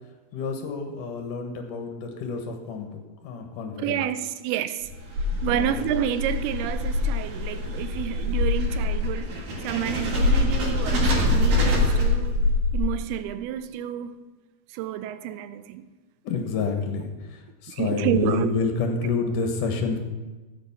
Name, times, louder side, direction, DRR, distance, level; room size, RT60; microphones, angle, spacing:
voice 1, 0.3-4.0 5.3-5.7 16.2-20.0, left 4 dB, 65° left, 2.7 m, -29 dB
voice 2, 3.8-4.9 5.4-12.4 12.7-14.2 14.7-15.9 17.7-18.5, right 11 dB, 90° right, 2.7 m, -29 dB
sound 1, 4.8-13.1, left 2 dB, 65° right, 4.6 m, -24 dB
14.0 x 8.0 x 7.1 m
omnidirectional pair, 4.4 m